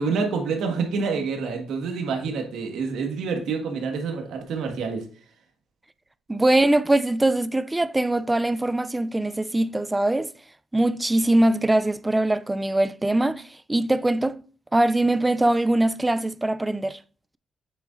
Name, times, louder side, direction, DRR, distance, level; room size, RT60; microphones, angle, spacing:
voice 1, 0.0-5.0, right 5 dB, 80° right, 1.5 m, -27 dB
voice 2, 6.3-10.3 10.7-13.4 13.7-14.4 14.7-17.0, right 1 dB, 10° right, 0.3 m, -22 dB
8.0 x 6.8 x 2.5 m
cardioid pair, 165°, 0 cm